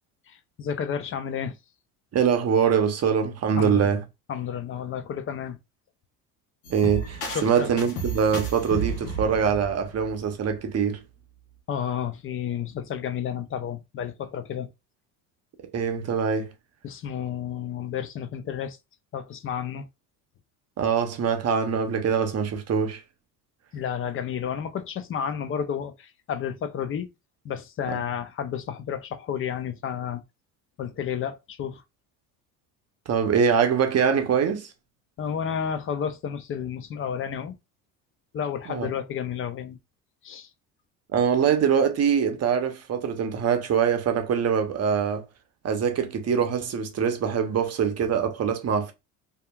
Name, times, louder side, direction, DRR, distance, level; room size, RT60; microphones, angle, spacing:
voice 1, 0.3-1.6 3.6-3.9 4.3-5.6 7.3-7.7 11.7-14.7 16.8-18.8 19.1-19.9 23.7-27.1 27.4-30.2 30.8-31.8 35.2-37.6 38.3-39.8 40.2-40.5, left 8 dB, 30° left, 0.4 m, -31 dB
voice 2, 2.1-4.0 6.7-11.0 15.7-16.5 20.8-23.0 27.9-28.0 33.1-34.7 38.7-38.9 41.1-45.3 45.6-48.9, right 7 dB, 35° right, 0.7 m, -23 dB
sound 1, 6.6-10.6, right 4 dB, 75° left, 1.0 m, -33 dB
2.7 x 2.3 x 2.2 m
hypercardioid pair, 75°, 44 cm